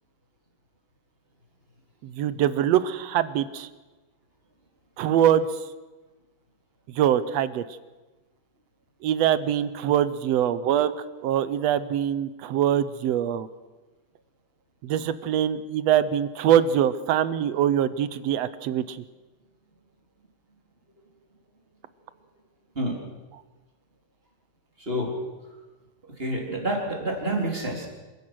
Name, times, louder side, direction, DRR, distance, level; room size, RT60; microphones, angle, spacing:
voice 1, 2.0-3.7 5.0-5.4 7.0-7.6 9.0-10.9 11.2-13.5 14.8-19.0, right 10 dB, 70° right, 14 dB, 1.8 m, -23 dB
voice 2, 24.8-25.1 26.2-27.9, right 1 dB, 20° right, 0 dB, 4.0 m, -28 dB
27.0 x 16.0 x 6.3 m, 1.2 s
omnidirectional pair, 3.4 m